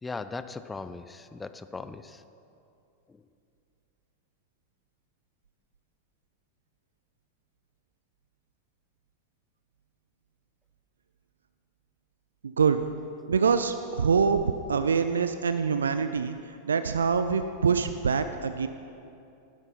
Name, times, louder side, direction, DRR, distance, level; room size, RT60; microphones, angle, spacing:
voice 1, 0.0-2.2 3.1-3.2, left 3 dB, 10° left, 12 dB, 0.4 m, -38 dB
voice 2, 12.4-12.8 13.3-18.7, right 6 dB, 70° right, 10 dB, 0.3 m, -25 dB
11.0 x 8.1 x 5.5 m, 2.7 s
figure-of-eight pair, 90°, 0 cm